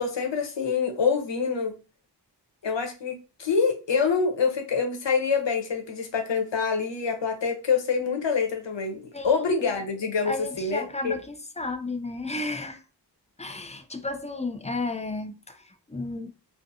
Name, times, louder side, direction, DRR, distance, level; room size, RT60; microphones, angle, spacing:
voice 1, 0.0-1.7 2.6-11.2, left 5 dB, 90° left, 0.7 m, -26 dB
voice 2, 9.1-9.4 10.3-12.8 13.4-16.4, left 2 dB, 15° left, 0.3 m, -33 dB
2.5 x 2.4 x 2.6 m
wide cardioid pair, 60°, 43 cm